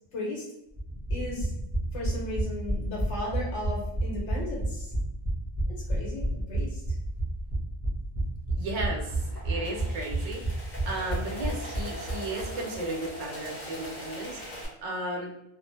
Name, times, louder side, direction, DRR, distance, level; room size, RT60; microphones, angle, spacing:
voice 1, 0.1-0.4 1.1-1.5 1.9-4.9 5.9-6.8, left 2 dB, 70° left, -4 dB, 1.3 m, -35 dB
sound 1, 0.7-12.5 12.7-12.8 13.1-13.2, right 2 dB, 15° left, 0.8 m, -30 dB
voice 2, 8.5-15.3, right 1 dB, 45° right, 0 dB, 0.5 m, -35 dB
sound 2, 9.1-14.6, equal, 40° left, 1.0 m, -41 dB
2.5 x 2.1 x 3.2 m, 0.84 s
omnidirectional pair, 1.3 m